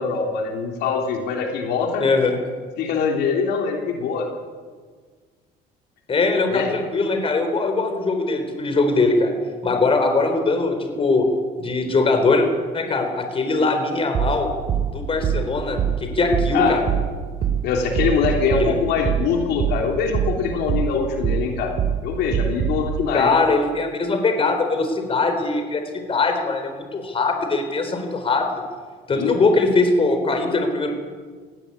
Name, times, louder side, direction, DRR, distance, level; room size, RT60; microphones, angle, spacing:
voice 1, 0.0-2.0 2.8-4.3 6.5-6.7 16.5-16.8 17.6-21.7 22.0-23.4 29.1-29.4, left 5 dB, 80° left, 2 dB, 3.3 m, -23 dB
voice 2, 2.0-2.4 6.1-9.3 9.6-11.3 11.6-12.5 12.7-14.5 14.9-16.8 18.6-18.7 23.1-28.5 29.1-30.9, left 3 dB, 35° left, 6 dB, 4.0 m, -21 dB
sound 1, 14.1-22.9, right 8 dB, 60° right, 3.0 m, -24 dB
19.0 x 17.0 x 8.7 m, 1.5 s
cardioid pair, 110°, 17 cm